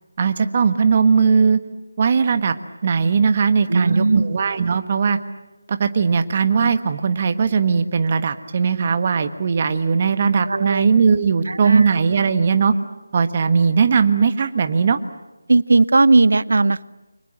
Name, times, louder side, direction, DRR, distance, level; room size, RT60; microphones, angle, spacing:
voice 1, 0.2-1.6 2.0-2.5 2.8-5.2 5.7-12.7 13.1-15.0, right 5 dB, 35° right, 10 dB, 1.4 m, -18 dB
voice 2, 3.7-4.3 10.5-10.8 11.5-11.9 15.5-16.8, right 3 dB, 60° right, 20 dB, 0.8 m, -17 dB
29.5 x 25.0 x 7.6 m, 1.1 s
figure-of-eight pair, 160°, 0 cm